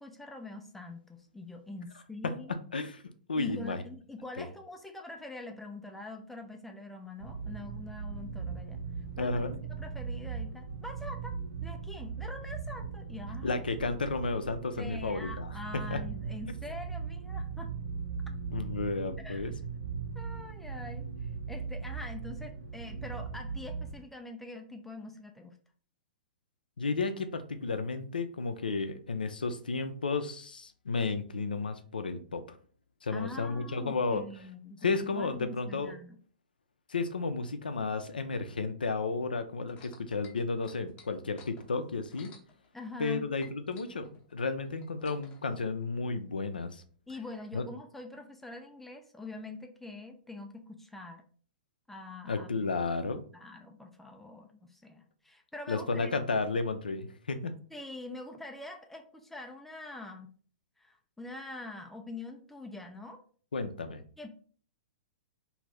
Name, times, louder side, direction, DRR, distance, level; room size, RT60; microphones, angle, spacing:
voice 1, 0.0-2.6 3.4-8.8 9.2-9.3 9.7-11.4 11.6-13.6 14.8-17.7 19.2-19.4 20.2-25.6 33.1-36.2 42.7-43.3 47.1-51.2 51.9-52.7 53.3-56.1 57.7-60.3 60.8-63.2 64.2-64.3, left 2 dB, 5° left, 4 dB, 0.3 m, -44 dB
voice 2, 2.7-3.0 3.3-3.8 4.4-4.5 9.2-9.5 13.4-15.5 15.9-16.0 18.5-19.5 26.8-32.6 33.0-34.2 34.8-35.9 36.9-42.3 43.0-46.8 47.5-47.6 52.3-53.2 55.7-57.5 63.5-64.0, left 4 dB, 75° left, 9 dB, 0.4 m, -32 dB
sound 1, 7.2-23.9, right 5 dB, 80° right, 1.0 m, -39 dB
sound 2, 39.7-43.1 43.4-45.4 46.2-46.3, left 6 dB, 25° left, 0.7 m, -55 dB
2.6 x 2.5 x 3.2 m, 0.44 s
figure-of-eight pair, 110°, 5 cm